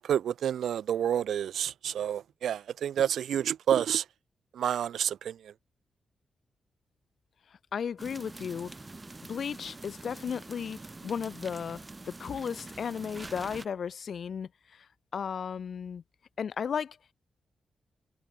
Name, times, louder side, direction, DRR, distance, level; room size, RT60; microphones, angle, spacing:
voice 1, 0.0-4.0 4.5-5.5, right 9 dB, 90° right, 0.9 m, -29 dB
voice 2, 7.7-8.7 9.3-14.9 15.1-16.0 16.4-17.1, left 7 dB, 55° left, 2.1 m, -35 dB
sound 1, 8.0-13.7, right 2 dB, 20° right, 5.5 m, -45 dB
wide cardioid pair, 155°, 0 cm